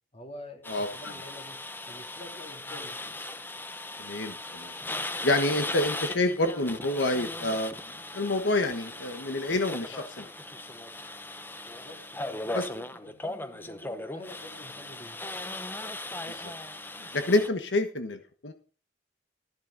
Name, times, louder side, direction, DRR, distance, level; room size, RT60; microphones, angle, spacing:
voice 1, 0.1-1.6 1.9-3.0 11.8-15.2, left 1 dB, 35° left, 3 dB, 3.1 m, -46 dB
sound 1, 0.6-17.5, left 2 dB, 10° left, 0.9 m, -38 dB
voice 2, 0.7-1.1 4.0-4.7 5.2-7.7 8.1-10.3 12.5-12.6 16.3-16.5 17.0-18.5, left 2 dB, 80° left, 8 dB, 1.3 m, -28 dB
14.0 x 11.0 x 4.0 m, 0.38 s
head